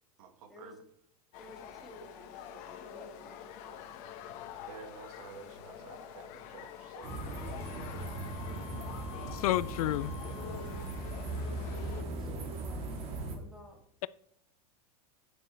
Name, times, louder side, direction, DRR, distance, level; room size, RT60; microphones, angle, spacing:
voice 1, 0.2-0.8 4.6-7.4, right 6 dB, 70° right, 1.6 m, -51 dB
sound 1, 1.3-12.0, left 9 dB, 40° left, 1.2 m, -47 dB
voice 2, 1.4-4.2 10.3-10.9 11.3-12.9 13.3-13.8, equal, ahead, 2.1 m, -51 dB
sound 2, 7.0-13.4, right 2 dB, 30° right, 1.7 m, -39 dB
Wind instrument woodwind instrument, 7.5-11.4, left 12 dB, 25° left, 1.4 m, -51 dB
voice 3, 9.3-10.1, left 15 dB, 80° left, 0.4 m, -30 dB
9.0 x 8.8 x 3.2 m
supercardioid pair, 160°, 19 cm